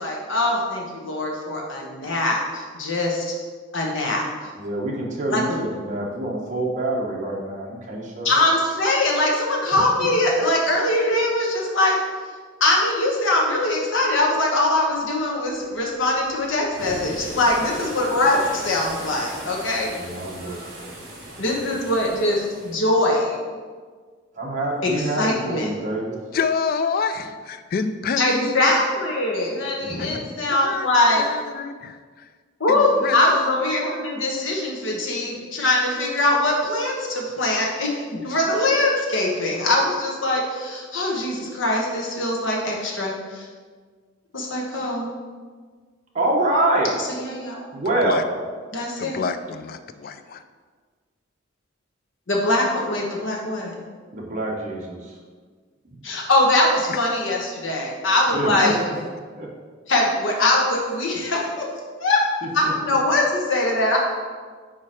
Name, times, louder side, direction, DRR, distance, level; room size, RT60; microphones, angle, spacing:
voice 1, 0.0-3.3 3.7-4.3 5.3-5.4 8.2-12.0 12.6-19.9 21.4-23.4 24.8-25.7 28.2-31.2 32.6-43.5 44.3-45.1 47.2-47.6 48.7-49.2 52.3-53.7 56.0-58.8 59.9-61.6 62.0-62.2 62.5-64.0, left 2 dB, 75° left, -1 dB, 1.1 m, -22 dB
voice 2, 4.6-8.4 19.9-20.9 24.4-26.2 29.8-30.2 46.1-46.9 47.7-48.2 54.1-55.0 58.3-58.9 59.4-59.5 62.6-62.7, right 1 dB, 40° right, -3 dB, 0.9 m, -26 dB
sound 1, 15.1-22.8, right 1 dB, 55° right, 1.5 m, -39 dB
voice 3, 20.8-21.2 26.3-28.8 30.0-30.2 30.5-30.9 31.1-32.3 32.7-33.5 47.9-48.2 49.0-50.4 56.9-57.1, left 5 dB, 50° left, 10 dB, 0.3 m, -28 dB
4.9 x 4.5 x 4.3 m, 1.5 s
head